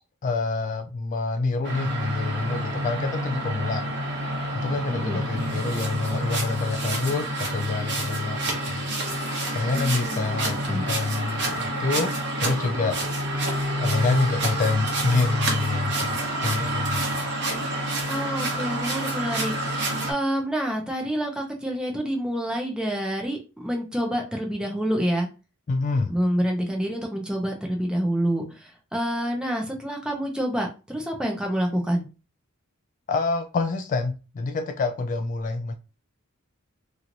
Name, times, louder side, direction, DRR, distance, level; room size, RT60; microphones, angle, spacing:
voice 1, 0.2-3.8 4.5-8.8 9.5-13.0 13.8-17.1 25.7-26.1 33.1-35.7, left 3 dB, 35° left, 0.3 m, -27 dB
sound 1, 1.6-20.1, right 1 dB, 55° right, 1.1 m, -28 dB
voice 2, 4.9-5.2 9.7-10.8 18.1-25.3 26.1-32.0, equal, 5° right, 0.7 m, -28 dB
3.0 x 2.8 x 2.6 m
head